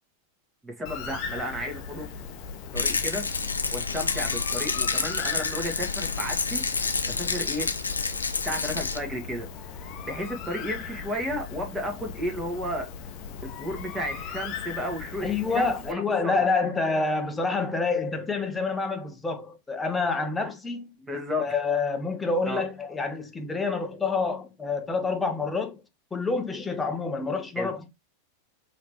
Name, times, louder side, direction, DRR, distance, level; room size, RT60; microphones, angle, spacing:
voice 1, 0.6-2.1 2.7-7.7 8.4-12.9 13.4-16.3 21.0-21.5 22.5-22.6 27.6-27.7, equal, 15° right, 1.7 m, -33 dB
Bird, 0.9-15.9, left 6 dB, 40° left, 0.9 m, -38 dB
Rattle, 2.7-9.0, left 4 dB, 75° left, 0.7 m, -29 dB
voice 2, 15.2-20.9 21.4-25.8 26.1-27.9, left 4 dB, 10° left, 1.0 m, -27 dB
4.9 x 3.2 x 3.0 m
figure-of-eight pair, 90°, 0 cm